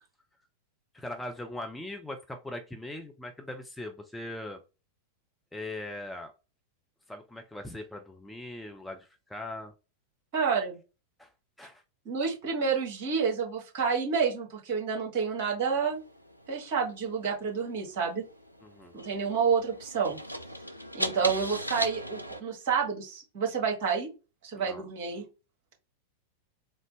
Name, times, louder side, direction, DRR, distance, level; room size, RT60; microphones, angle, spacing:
voice 1, 0.9-4.6 5.5-6.3 7.1-9.7 11.2-11.3 11.6-11.8 18.6-18.9 24.5-24.9, left 1 dB, 5° left, 4 dB, 0.5 m, -40 dB
voice 2, 10.3-10.8 12.0-16.0 16.5-18.2 18.9-20.2 20.9-24.1 24.4-25.2, right 6 dB, 50° right, 0 dB, 1.6 m, -29 dB
sound 1, 15.7-22.4, equal, 90° right, 0.4 m, -39 dB
3.8 x 2.1 x 3.2 m, 0.29 s
figure-of-eight pair, 90°, 0 cm